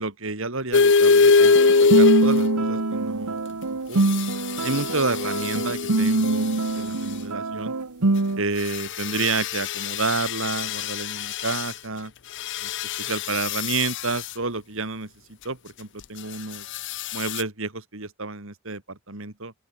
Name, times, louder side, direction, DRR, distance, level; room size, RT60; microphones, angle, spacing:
voice 1, 0.0-1.5 1.8-3.4 3.7-4.0 4.6-7.7 8.4-12.1 12.6-12.7 13.0-15.1 15.4-16.6 17.1-19.5, right 3 dB, 60° right, 2.7 m, -30 dB
sound 1, 0.7-2.8 4.0-6.4 8.6-11.7 12.4-14.3 16.7-17.4, left 4 dB, 55° left, 0.7 m, -23 dB
sound 2, 1.4-8.4, right 2 dB, 85° right, 1.3 m, -24 dB
open air
head